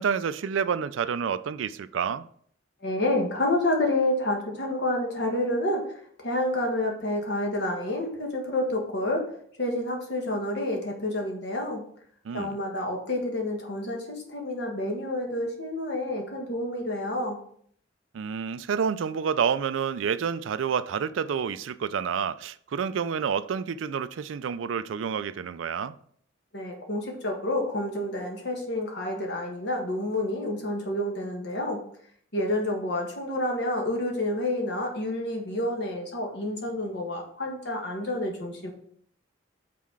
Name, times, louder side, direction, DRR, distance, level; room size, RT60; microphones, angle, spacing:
voice 1, 0.0-2.3 12.2-12.6 18.1-25.9, right 7 dB, 85° right, 0.4 m, -29 dB
voice 2, 2.8-5.9 6.2-9.3 9.6-11.8 12.3-17.4 26.5-31.8 32.3-38.7, left 1 dB, 60° left, 1.5 m, -29 dB
5.7 x 4.2 x 4.8 m
head